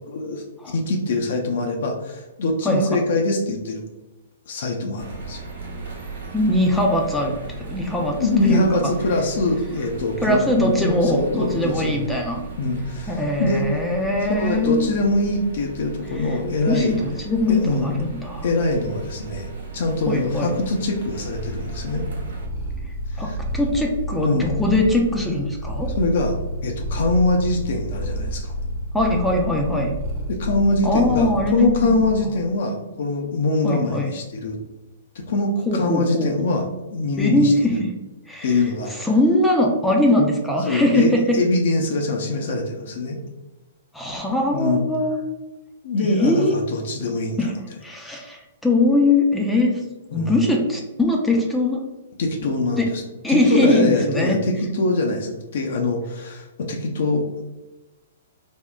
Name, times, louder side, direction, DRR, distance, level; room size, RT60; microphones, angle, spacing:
voice 1, 0.1-3.8 4.5-5.4 8.2-12.0 12.6-13.7 14.3-16.9 17.5-18.0 18.4-22.1 23.1-23.4 24.2-24.5 26.0-26.3 26.6-28.5 30.3-34.6 35.1-37.5 38.4-38.9 40.7-43.2 44.5-44.8 45.8-47.5 50.1-50.5 52.2-53.0 53.3-57.4, left 2 dB, 65° left, 2 dB, 0.4 m, -23 dB
sound 1, 5.0-22.5, right 4 dB, 75° right, 0.8 m, -36 dB
voice 2, 6.3-7.3 7.7-8.2 8.4-8.6 10.2-12.4 13.1-14.9 16.2-16.4 16.7-18.5 20.1-20.5 22.8-25.9 28.9-29.9 30.8-32.0 33.6-34.1 35.7-36.3 37.2-37.9 38.3-38.6 38.9-41.4 43.9-45.2 46.0-46.5 47.4-47.5 47.8-49.8 50.1-51.8 52.8-52.9 53.2-54.4, left 1 dB, 5° left, 0 dB, 0.4 m, -21 dB
Purr, 21.2-32.3, right 1 dB, 40° right, 1.0 m, -30 dB
3.5 x 2.0 x 2.3 m, 1.1 s
hypercardioid pair, 130°, 0 cm